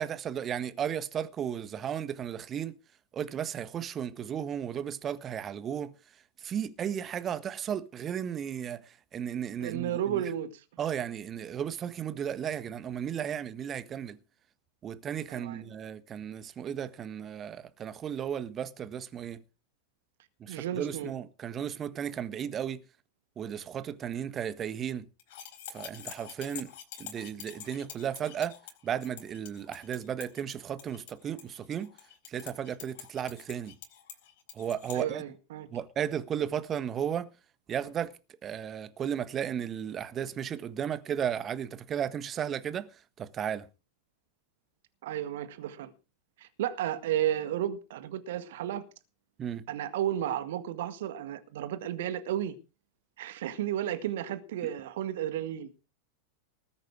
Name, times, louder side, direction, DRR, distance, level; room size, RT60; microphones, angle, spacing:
voice 1, 0.0-2.8 3.1-5.9 6.4-8.8 9.1-10.2 10.8-14.2 14.8-19.4 20.4-22.8 23.4-25.1 25.7-26.7 27.0-28.5 28.8-31.9 32.3-33.7 34.5-35.2 35.7-37.3 37.7-38.1 38.4-42.9 43.2-43.7 49.4-49.6, right 9 dB, 25° right, 1.5 m, -34 dB
voice 2, 9.6-10.5 15.3-15.6 20.5-21.1 34.9-35.7 45.0-45.9 46.4-48.8 49.7-52.6 53.2-55.7, right 11 dB, 55° right, 1.9 m, -33 dB
sound 1, 25.2-35.0, left 9 dB, 50° left, 4.4 m, -47 dB
20.0 x 8.9 x 4.9 m
figure-of-eight pair, 90°, 0 cm